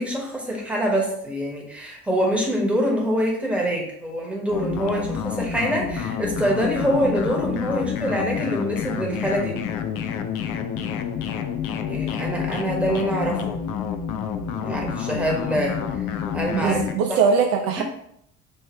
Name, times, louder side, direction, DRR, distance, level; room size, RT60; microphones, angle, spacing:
voice 1, 0.0-9.6 11.8-13.6 14.6-16.1 16.3-16.8 17.1-17.2 17.8-17.9, equal, 5° right, -2 dB, 1.3 m, -25 dB
sound 1, 4.5-16.9, left 8 dB, 55° left, 0.5 m, -28 dB
voice 2, 16.5-17.8, right 6 dB, 60° right, 3 dB, 0.5 m, -21 dB
3.2 x 3.1 x 4.4 m, 0.73 s
figure-of-eight pair, 60°, 44 cm